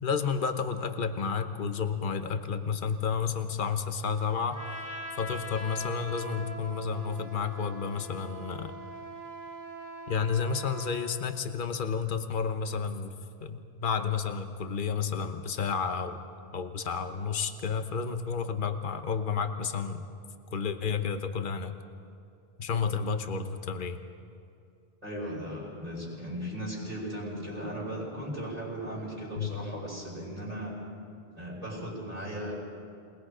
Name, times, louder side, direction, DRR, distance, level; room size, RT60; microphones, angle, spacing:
voice 1, 0.0-4.6 5.2-8.8 10.1-13.2 13.4-16.2 16.5-20.0 20.5-21.7 22.6-24.0 29.4-29.6, left 6 dB, 55° left, 8 dB, 1.2 m, -31 dB
Trumpet, 4.5-11.1, right 1 dB, 20° right, 2.0 m, -42 dB
voice 2, 25.0-30.8 31.3-32.5, equal, 35° right, -9 dB, 5.9 m, -37 dB
28.0 x 20.0 x 5.0 m, 2.5 s
omnidirectional pair, 1.1 m